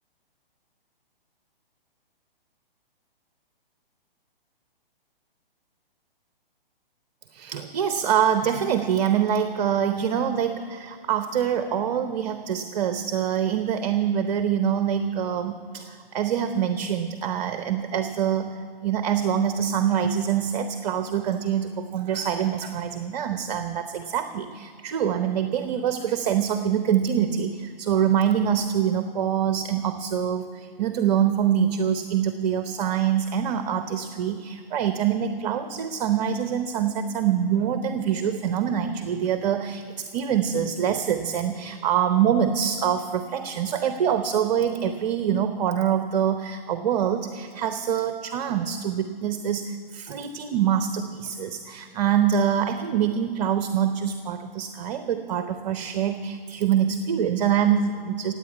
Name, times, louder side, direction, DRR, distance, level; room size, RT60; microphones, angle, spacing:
voice 1, 7.3-58.3, right 8 dB, 45° right, 8 dB, 0.8 m, -25 dB
16.5 x 8.9 x 8.3 m, 2.1 s
hypercardioid pair, 135°, 30 cm